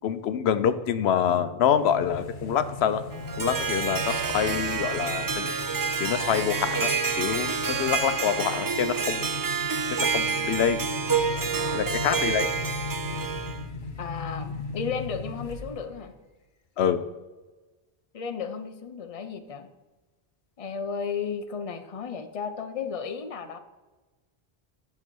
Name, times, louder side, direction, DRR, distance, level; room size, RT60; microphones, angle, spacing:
voice 1, 0.0-3.0 3.4-5.5 6.0-6.9 7.2-9.2 10.0-10.8 11.7-12.5 16.8-17.0, left 8 dB, 85° left, 12 dB, 0.8 m, -26 dB
sound 1, 1.8-16.0, left 3 dB, 55° left, 1.1 m, -38 dB
Harp, 3.1-13.6, right 5 dB, 30° right, 0.4 m, -28 dB
voice 2, 11.5-11.9 14.0-16.1 18.1-19.7 20.6-23.6, left 6 dB, 35° left, 8 dB, 0.8 m, -34 dB
11.0 x 5.6 x 6.1 m, 1.2 s
omnidirectional pair, 1.0 m